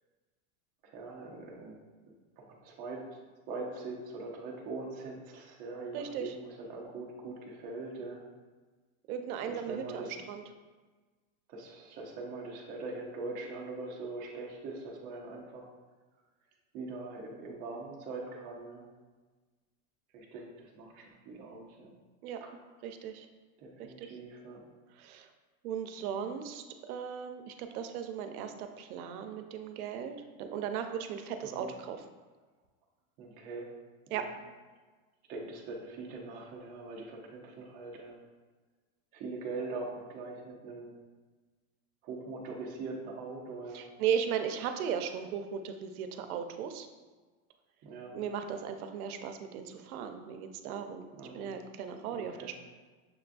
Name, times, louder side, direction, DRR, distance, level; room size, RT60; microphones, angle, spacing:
voice 1, 0.8-1.8 2.4-3.0 3.5-8.2 9.5-10.2 11.5-15.7 16.7-18.9 20.1-21.9 22.4-22.5 23.6-24.6 31.4-31.7 33.2-33.7 34.1-34.3 35.3-38.1 39.1-40.9 42.0-43.8 47.8-48.2 51.2-51.5 52.1-52.5, right 3 dB, 20° right, -2 dB, 0.3 m, -42 dB
voice 2, 5.9-6.3 9.1-10.4 22.2-22.4 22.8-23.3 23.8-24.1 25.0-25.3 25.6-32.0 34.1-34.3 43.7-46.9 48.1-51.1 51.3-52.5, right 7 dB, 80° right, 7 dB, 0.6 m, -37 dB
6.6 x 2.2 x 2.4 m, 1.3 s
supercardioid pair, 150°, 43 cm